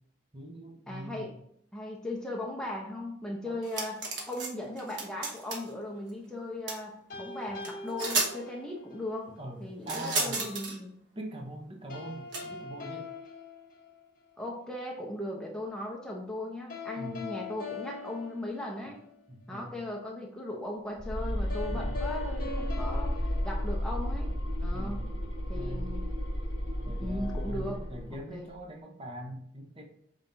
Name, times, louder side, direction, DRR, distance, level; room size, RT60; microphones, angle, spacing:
voice 1, 0.3-1.3 3.4-3.6 9.4-10.6 11.2-13.1 17.0-17.3 19.3-19.8 21.7-22.0 24.7-25.1 25.5-25.9 26.8-29.9, right 1 dB, 30° right, 1 dB, 0.8 m, -42 dB
voice 2, 0.9-1.4 1.7-10.9 14.4-19.0 19.5-24.3 24.6-25.0 25.5-26.0 26.9-27.8 28.3-28.5, left 1 dB, 5° left, -2 dB, 0.9 m, -38 dB
sound 1, 3.6-4.5 4.8-5.7 6.7-6.8 7.6-7.7 8.0-8.3 9.9-10.8 12.3-12.4, right 3 dB, 65° right, 1.1 m, -32 dB
sound 2, 7.1-9.3 11.9-14.3 16.7-19.2 21.5-24.3, left 4 dB, 50° left, 1.1 m, -42 dB
sound 3, 21.0-28.2, equal, 70° left, 1.3 m, -33 dB
5.4 x 3.6 x 2.7 m, 0.72 s
head